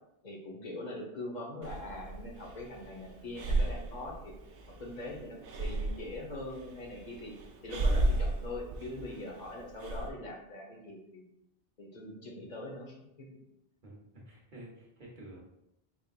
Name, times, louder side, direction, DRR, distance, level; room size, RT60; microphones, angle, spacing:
voice 1, 0.2-4.3 4.8-7.3 7.6-11.2 11.8-13.3, left 1 dB, 45° left, -1 dB, 1.0 m, -42 dB
Breathing, 1.6-10.1, right 2 dB, 70° right, 0.8 m, -34 dB
voice 2, 13.8-15.4, right 1 dB, 50° right, -3 dB, 1.2 m, -50 dB
5.0 x 3.6 x 2.4 m, 0.84 s
omnidirectional pair, 1.0 m